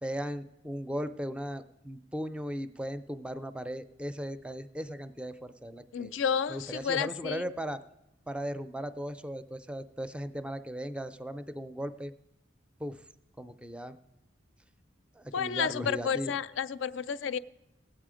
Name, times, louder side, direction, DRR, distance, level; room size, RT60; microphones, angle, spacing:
voice 1, 0.0-6.1 6.5-7.8 8.3-12.1 12.8-13.0 13.4-14.0 15.1-16.4, equal, 5° right, 0.4 m, -37 dB
voice 2, 5.9-7.4 15.3-17.4, left 7 dB, 75° left, 0.4 m, -31 dB
17.5 x 8.2 x 5.0 m
head